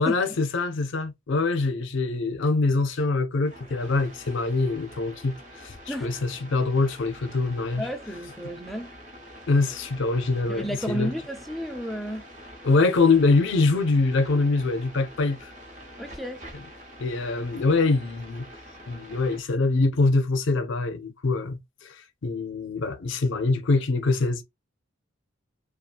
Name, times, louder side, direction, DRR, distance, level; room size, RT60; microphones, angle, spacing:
voice 1, 0.0-5.3 5.6-7.9 9.5-11.1 12.6-15.5 17.0-18.4 18.9-21.6 21.8-22.0 22.2-24.4, left 3 dB, 60° left, 0.5 m, -24 dB
sound 1, 3.4-19.4, equal, 35° right, 0.8 m, -46 dB
voice 2, 7.7-8.9 10.5-12.3 16.0-16.4, equal, ahead, 0.3 m, -32 dB
2.7 x 2.3 x 2.3 m
head